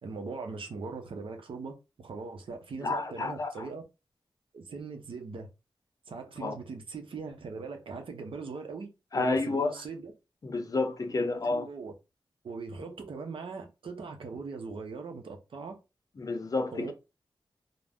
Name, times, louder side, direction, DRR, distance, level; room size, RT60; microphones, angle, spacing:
voice 1, 0.0-3.8 4.5-5.5 6.1-8.9 9.2-10.1 11.3-11.9 12.4-15.8 16.7-16.9, right 4 dB, 80° right, 0.7 m, -40 dB
voice 2, 2.8-3.7 6.4-6.6 9.1-9.7 10.4-11.7 16.2-16.9, left 3 dB, 40° left, 0.6 m, -30 dB
2.5 x 2.1 x 3.4 m
wide cardioid pair, 115°, 9 cm